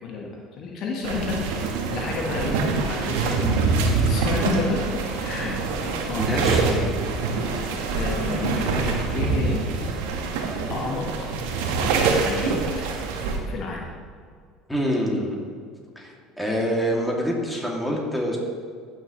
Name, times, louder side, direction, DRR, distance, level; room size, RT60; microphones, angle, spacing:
voice 1, 0.0-5.6 6.1-6.9 7.4-9.6 10.7-11.3 12.2-12.6 13.5-13.9, left 3 dB, 55° left, -1 dB, 1.4 m, -30 dB
sound 1, 1.0-13.4, right 4 dB, 75° right, 1.3 m, -25 dB
voice 2, 6.1-6.6 14.7-15.5 16.0-18.4, equal, 5° left, -2 dB, 2.5 m, -26 dB
15.0 x 6.4 x 3.1 m, 2.1 s
hypercardioid pair, 70°, 0 cm